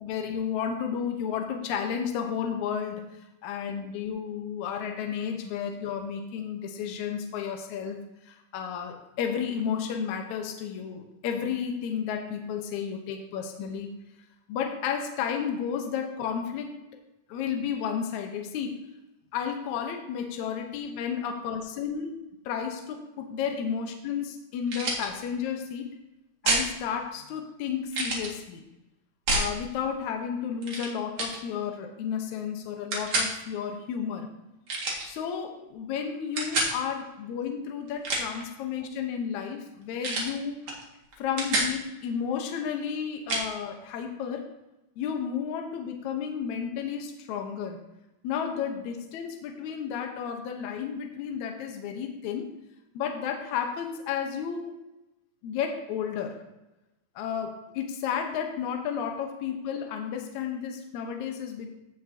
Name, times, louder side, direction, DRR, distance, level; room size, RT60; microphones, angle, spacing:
voice 1, 0.0-8.0 8.2-13.9 14.5-16.7 17.3-18.8 19.3-22.1 22.5-25.9 26.4-28.6 29.3-34.3 35.0-40.6 41.2-44.5 45.0-47.8 48.2-52.5 52.9-54.7 55.4-56.4 57.2-61.7, left 7 dB, 75° left, 3 dB, 2.3 m, -32 dB
sound 1, 24.7-25.1 26.4-26.7 27.9-28.3 29.3-29.5 30.6-30.9 31.2-31.4 32.9-33.3 34.7-35.1 36.4-36.7 37.9-38.4 40.0-40.3 40.7-40.8 41.1-41.7 43.3-43.5, right 2 dB, 50° right, 2.4 m, -27 dB
16.0 x 6.6 x 2.7 m, 0.96 s
omnidirectional pair, 3.6 m